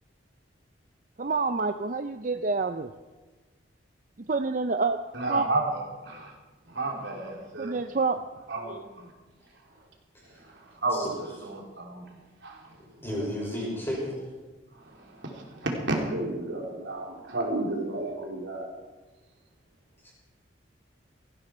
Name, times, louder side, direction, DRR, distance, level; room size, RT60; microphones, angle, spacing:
voice 1, 1.2-2.9 4.3-5.0 5.3-5.5 7.6-8.2, right 4 dB, 40° right, 8 dB, 0.5 m, -27 dB
voice 2, 5.1-6.3 6.7-7.8 8.5-9.1 10.2-12.1 12.4-12.8 14.7-18.7, right 2 dB, 70° right, 0 dB, 3.1 m, -32 dB
voice 3, 13.0-14.2 20.0-20.1, equal, 10° left, -4 dB, 5.7 m, -32 dB
18.0 x 15.0 x 4.4 m, 1.2 s
head